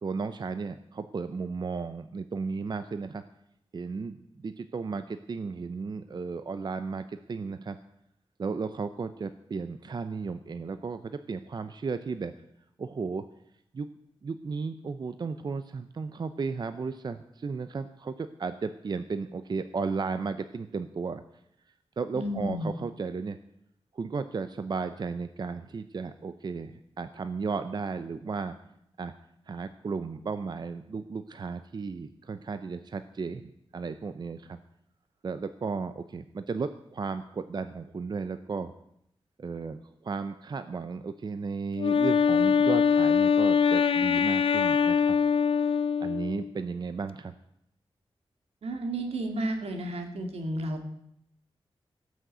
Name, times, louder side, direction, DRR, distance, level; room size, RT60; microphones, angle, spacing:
voice 1, 0.0-3.2 3.7-7.8 8.4-12.3 12.8-13.2 13.7-13.9 14.2-21.2 22.0-23.4 23.9-28.6 29.0-29.1 29.5-34.6 35.2-38.7 39.4-45.2 46.0-47.3, right 4 dB, 45° right, 10 dB, 0.6 m, -34 dB
voice 2, 22.1-22.7 48.6-50.8, right 1 dB, 80° right, 4 dB, 2.2 m, -32 dB
Wind instrument woodwind instrument, 41.8-46.5, left 6 dB, 65° left, 0.6 m, -23 dB
17.5 x 6.4 x 7.9 m, 0.77 s
wide cardioid pair, 145°, 10 cm